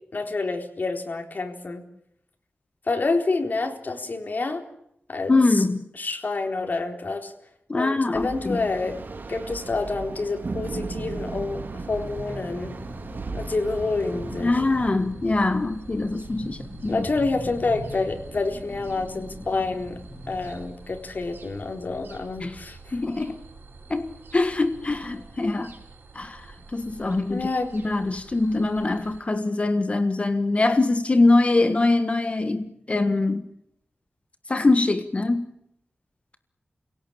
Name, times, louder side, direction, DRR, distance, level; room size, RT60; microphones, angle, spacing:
voice 1, 0.1-1.8 2.9-4.6 5.1-5.6 6.0-7.3 7.7-9.0 9.3-11.6 11.9-12.7 13.3-14.5 16.9-20.0 20.3-22.8 27.3-27.8, left 3 dB, 55° left, 4.0 m, -28 dB
voice 2, 5.3-5.9 7.7-8.6 14.4-17.0 22.4-22.6 22.9-23.4 23.9-25.7 26.1-26.5 26.7-27.4 27.7-33.5 34.5-35.5, left 2 dB, 35° left, 1.5 m, -23 dB
sound 1, 8.1-14.9, right 3 dB, 60° right, 2.0 m, -36 dB
sound 2, 11.5-29.2, right 3 dB, 85° right, 5.0 m, -45 dB
sound 3, 11.9-20.6, left 1 dB, 15° left, 5.2 m, -41 dB
29.5 x 17.5 x 8.8 m
wide cardioid pair, 110°, 4 cm